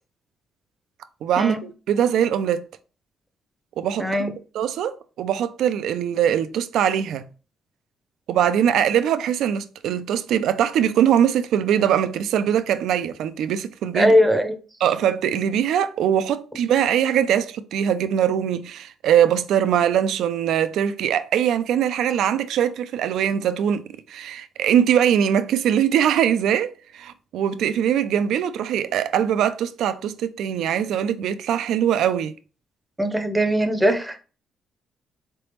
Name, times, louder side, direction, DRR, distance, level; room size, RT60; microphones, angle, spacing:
voice 1, 1.2-2.7 3.8-4.3 4.5-7.3 8.3-14.1 14.8-32.3, right 9 dB, 80° right, 0.4 m, -22 dB
voice 2, 4.0-4.3 13.9-14.5 33.0-34.2, equal, 10° right, 0.7 m, -20 dB
3.8 x 3.4 x 3.0 m
cardioid pair, 90°, 0 cm